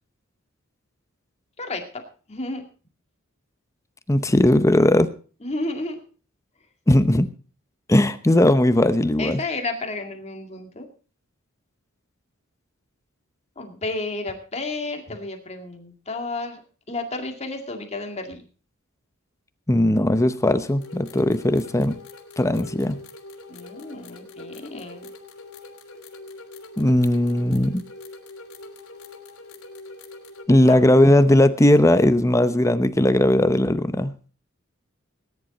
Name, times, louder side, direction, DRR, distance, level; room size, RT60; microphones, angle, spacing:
voice 1, 1.6-2.0 2.3-2.6 5.4-6.0 9.2-10.9 13.6-16.6 16.9-18.5 23.5-25.1 30.7-30.8, left 2 dB, 30° left, 4 dB, 2.2 m, -32 dB
voice 2, 4.1-5.1 6.9-7.3 7.9-9.4 19.7-22.0 22.4-23.0 26.8-27.8 30.5-34.1, left 1 dB, 15° left, 11 dB, 0.8 m, -18 dB
sound 1, 20.6-30.5, left 2 dB, 75° left, 3.2 m, -43 dB
19.0 x 10.5 x 4.2 m, 0.39 s
head